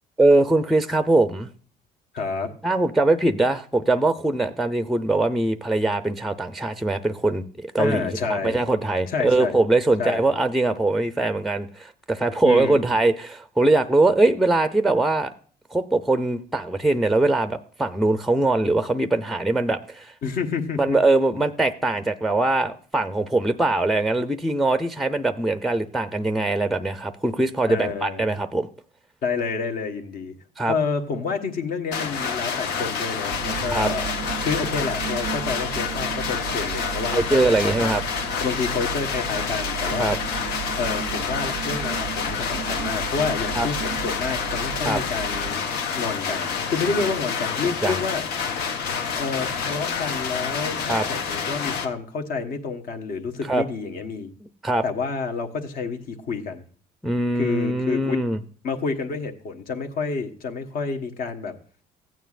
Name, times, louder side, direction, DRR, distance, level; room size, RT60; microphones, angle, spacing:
voice 1, 0.2-1.5 2.6-15.3 15.7-20.1 20.8-28.7 30.6-30.7 33.6-33.9 37.1-38.0 40.0-40.2 43.6-43.7 44.8-45.0 47.8-48.0 50.9-51.1 53.5-53.6 54.6-54.8 57.0-58.4, right 2 dB, ahead, 10 dB, 0.5 m, -22 dB
voice 2, 2.1-2.5 7.8-8.6 9.1-9.6 10.0-10.2 12.4-12.8 20.2-21.0 27.7-28.3 29.2-30.3 30.6-34.1 34.4-38.0 38.4-40.1 40.8-45.6 45.9-48.2 49.1-54.3 54.8-56.6 57.4-58.2 58.6-61.5, left 4 dB, 60° left, 5 dB, 1.3 m, -29 dB
sound 1, 31.9-51.8, left 6 dB, 75° left, 1.1 m, -28 dB
sound 2, 33.3-45.5, right 12 dB, 70° right, 0.4 m, -35 dB
15.0 x 9.1 x 2.5 m, 0.43 s
cardioid pair, 110°, 17 cm